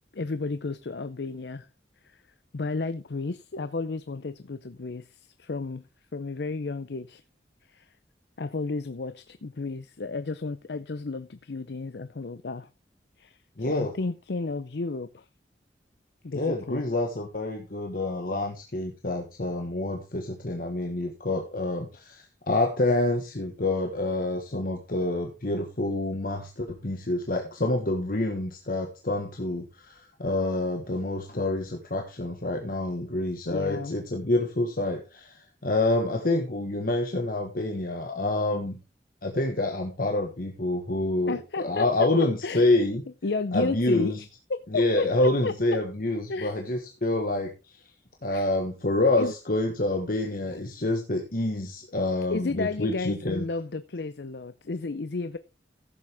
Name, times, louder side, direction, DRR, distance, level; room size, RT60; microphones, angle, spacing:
voice 1, 0.1-1.7 2.0-2.2 2.5-5.8 6.1-7.2 7.7-7.9 8.4-12.7 13.2-15.3 16.2-16.8 33.4-33.9 41.3-41.9 42.4-42.7 43.2-44.1 44.5-45.5 46.3-46.6 48.3-48.5 49.2-49.3 50.5-50.6 52.3-55.4, left 3 dB, 70° left, 0.6 m, -32 dB
voice 2, 13.6-13.9 16.3-38.8 39.2-43.0 43.5-44.2 44.7-47.5 48.2-53.4, left 2 dB, 55° left, 1.4 m, -27 dB
15.0 x 7.6 x 3.5 m
head